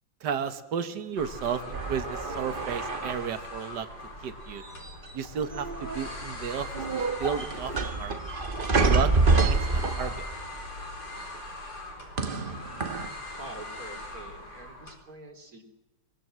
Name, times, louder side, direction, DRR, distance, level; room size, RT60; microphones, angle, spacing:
voice 1, 0.2-3.9 4.2-4.6 5.1-6.7 6.9-7.7 8.0-8.1 8.7-10.3, right 7 dB, 65° right, 10 dB, 1.9 m, -33 dB
sound 1, 1.2-14.9, left 1 dB, 60° left, 5.0 m, -41 dB
sound 2, 1.7-3.5 4.6-5.3 5.5-6.1 6.5-10.4 12.2-13.1, right 3 dB, 30° right, 1.4 m, -27 dB
voice 2, 13.2-15.6, right 2 dB, 50° right, 4 dB, 3.7 m, -45 dB
24.0 x 20.5 x 7.6 m, 1.1 s
omnidirectional pair, 2.0 m